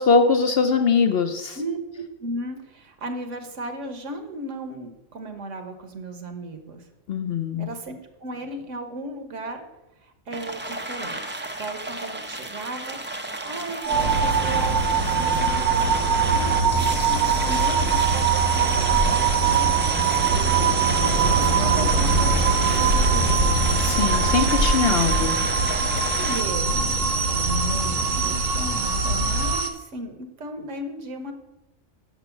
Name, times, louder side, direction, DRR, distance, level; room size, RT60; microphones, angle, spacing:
voice 1, 0.0-1.6 7.1-7.7 23.8-25.4, left 5 dB, 60° left, 6 dB, 0.7 m, -21 dB
voice 2, 1.5-6.9 7.6-9.7 10.0-19.7 20.1-20.4 21.3-23.6 26.1-31.3, right 2 dB, 70° right, 6 dB, 1.3 m, -35 dB
sound 1, 10.3-26.4, right 2 dB, 15° right, 0.3 m, -32 dB
sound 2, 13.8-29.7, right 8 dB, 55° right, 1.0 m, -24 dB
sound 3, 13.9-29.5, right 1 dB, 85° right, 1.5 m, -25 dB
6.2 x 6.1 x 7.0 m, 0.97 s
omnidirectional pair, 1.3 m